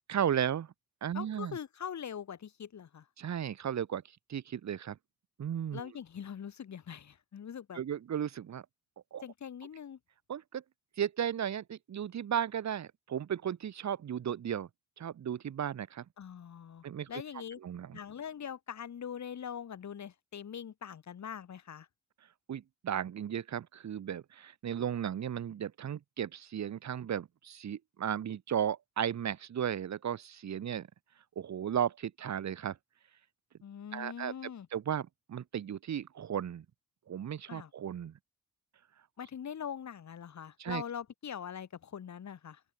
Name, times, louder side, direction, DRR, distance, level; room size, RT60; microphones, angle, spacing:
voice 1, 0.1-0.7 1.0-1.6 3.2-4.0 4.3-5.0 5.4-5.8 7.7-8.6 9.1-9.2 10.3-10.6 11.0-14.7 15.0-16.0 16.8-17.1 17.6-18.0 22.5-30.9 31.4-32.8 33.9-34.3 34.7-36.6 37.1-38.1 40.6-40.8, right 9 dB, 60° right, 1.1 m, -35 dB
voice 2, 1.1-3.1 5.7-7.8 9.2-10.0 16.2-17.6 17.9-21.9 33.6-34.7 37.5-37.7 39.2-42.6, left 8 dB, 65° left, 1.9 m, -42 dB
open air
wide cardioid pair, 110°, 31 cm